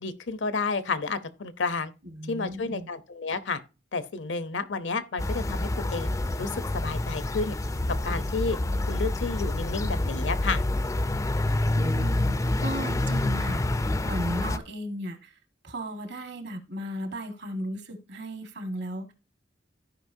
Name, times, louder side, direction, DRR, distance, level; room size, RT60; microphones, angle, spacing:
voice 1, 0.0-1.9 2.3-3.6 3.9-6.1 6.4-7.6 7.9-8.6 8.9-10.6, left 4 dB, 75° left, 0.8 m, -31 dB
voice 2, 2.0-2.9 11.7-15.3 15.6-19.1, equal, 65° right, 1.5 m, -36 dB
sound 1, 5.2-14.6, left 1 dB, 20° left, 0.4 m, -27 dB
14.0 x 5.1 x 2.7 m
head